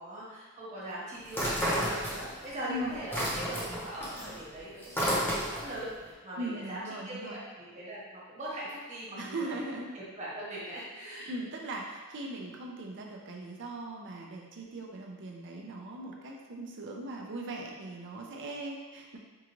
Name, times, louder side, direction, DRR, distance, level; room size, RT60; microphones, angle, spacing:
voice 1, 0.0-9.6 9.9-11.3, right 1 dB, 35° right, -8 dB, 1.2 m, -41 dB
sound 1, 1.3-2.5 2.8-5.8, equal, 10° left, 0.9 m, -31 dB
voice 2, 2.7-3.0 6.4-7.4 9.2-9.9 11.3-19.2, right 1 dB, 55° right, 0 dB, 0.6 m, -39 dB
4.6 x 2.5 x 3.0 m, 1.3 s
head